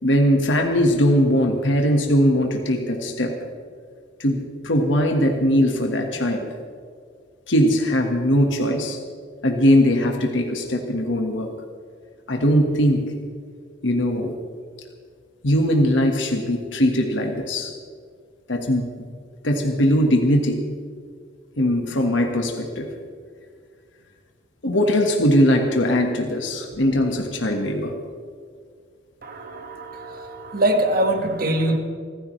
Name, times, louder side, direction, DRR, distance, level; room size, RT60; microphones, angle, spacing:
voice 1, 0.0-3.3 4.2-6.5 7.5-9.0 9.4-11.5 12.3-13.1 13.8-14.3 15.4-17.7 18.5-18.9 19.4-20.6 21.6-22.9 24.6-27.9, equal, 80° left, 2 dB, 1.6 m, -20 dB
voice 2, 29.2-31.8, right 1 dB, 50° right, 4 dB, 1.7 m, -23 dB
27.0 x 14.5 x 3.3 m, 2.1 s
head